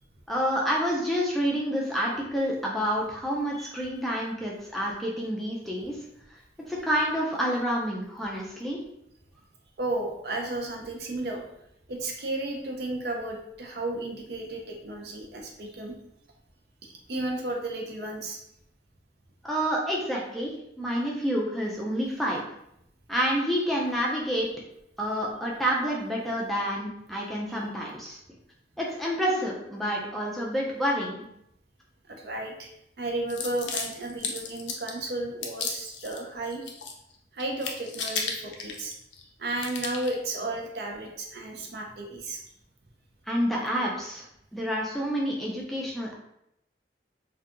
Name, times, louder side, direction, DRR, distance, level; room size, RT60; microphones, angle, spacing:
voice 1, 0.3-6.0 6.7-8.8 19.4-22.4 23.1-24.5 25.0-28.2 28.8-31.2 43.3-44.2 44.5-46.1, equal, ahead, -4 dB, 0.3 m, -28 dB
voice 2, 9.8-11.4 11.9-16.0 16.8-18.4 27.5-27.6 32.1-32.7 33.0-36.6 37.3-38.9 39.4-42.4, right 2 dB, 60° right, 1 dB, 0.5 m, -33 dB
sound 1, 33.3-35.0 35.4-36.2 36.5-37.1 37.4-39.2 39.6-40.2, left 5 dB, 90° left, 0.4 m, -34 dB
2.6 x 2.2 x 2.4 m, 0.77 s
head